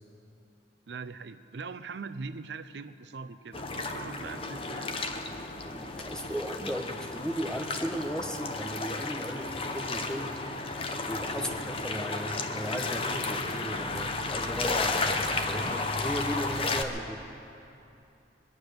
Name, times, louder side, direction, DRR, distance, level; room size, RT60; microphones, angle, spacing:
voice 1, 0.9-4.9, right 4 dB, 70° right, 12 dB, 0.5 m, -41 dB
sound 1, 3.5-16.8, left 3 dB, 30° left, 0.8 m, -33 dB
voice 2, 5.6-10.3 11.1-15.2 15.4-17.2, equal, 5° left, 3 dB, 0.8 m, -36 dB
22.5 x 9.7 x 6.6 m, 2.7 s
head